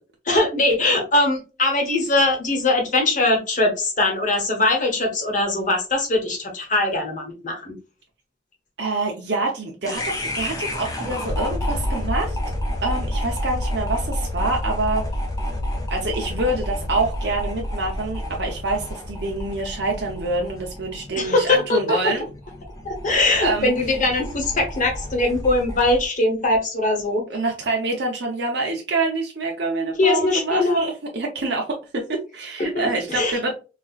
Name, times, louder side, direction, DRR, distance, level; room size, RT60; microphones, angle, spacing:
voice 1, 0.3-7.7 21.1-22.1 22.8-27.2 30.0-30.9 32.7-33.4, left 2 dB, 45° left, 1 dB, 1.1 m, -21 dB
voice 2, 8.8-12.4 12.8-15.0 15.9-22.3 23.4-23.7 24.0-24.1 27.3-33.6, right 2 dB, 60° right, 0 dB, 0.7 m, -26 dB
sound 1, 9.8-26.1, left 1 dB, 20° left, 0.6 m, -29 dB
4.1 x 2.4 x 2.4 m, 0.32 s
head